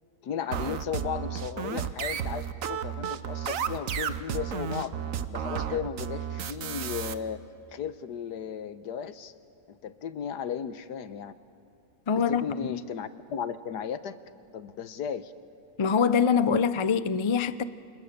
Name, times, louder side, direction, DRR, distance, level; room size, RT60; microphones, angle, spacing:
voice 1, 0.2-4.9 5.3-7.4 7.7-9.3 9.7-11.3 12.1-14.2 14.5-15.3, left 8 dB, 85° left, 1.6 m, -35 dB
sound 1, 0.5-7.1, right 8 dB, 60° right, 1.3 m, -32 dB
voice 2, 12.1-12.4 12.7-12.8 15.8-17.6, left 6 dB, 50° left, 0.3 m, -24 dB
29.5 x 27.0 x 6.8 m
omnidirectional pair, 1.7 m